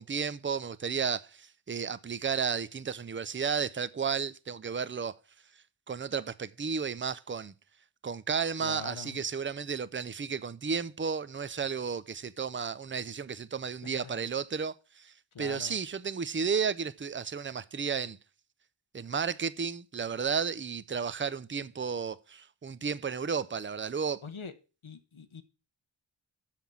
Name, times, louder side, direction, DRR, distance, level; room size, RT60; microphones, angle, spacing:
voice 1, 0.0-5.1 5.9-7.5 8.0-18.2 18.9-24.2, right 6 dB, 25° right, 0.5 m, -33 dB
voice 2, 8.6-9.3 13.8-14.2 15.3-15.8 24.2-24.5 24.8-25.4, left 6 dB, 90° left, 1.1 m, -44 dB
7.0 x 5.9 x 7.3 m
wide cardioid pair, 55°, 47 cm